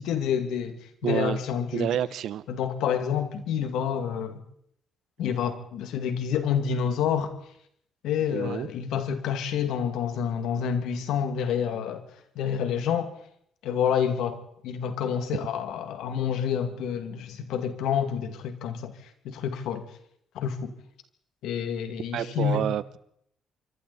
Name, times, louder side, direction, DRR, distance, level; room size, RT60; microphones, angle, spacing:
voice 1, 0.0-1.9 2.5-4.4 5.2-7.3 8.0-12.0 12.4-13.1 13.6-18.9 19.2-19.9 20.3-20.7 21.4-22.7, left 8 dB, 90° left, 2.4 m, -28 dB
voice 2, 1.0-1.4 1.7-2.4 8.3-8.7 22.1-23.0, right 10 dB, 75° right, 0.9 m, -28 dB
26.0 x 24.5 x 4.3 m
cardioid pair, 90°, 0 cm